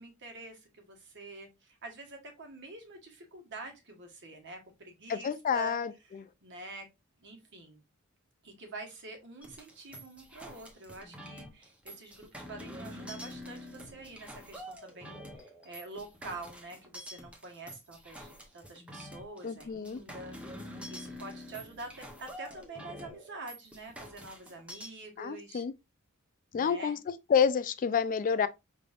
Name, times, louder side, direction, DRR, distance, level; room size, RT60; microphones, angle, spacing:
voice 1, 0.0-5.8 6.0-6.9 7.2-7.8 8.4-25.7 26.5-27.0, right 3 dB, 55° right, 1.3 m, -46 dB
voice 2, 5.1-6.2 19.4-20.0 25.2-25.7 26.5-28.5, left 7 dB, 40° left, 0.3 m, -29 dB
sound 1, 9.4-24.9, equal, 5° right, 0.8 m, -47 dB
5.0 x 3.4 x 2.4 m
head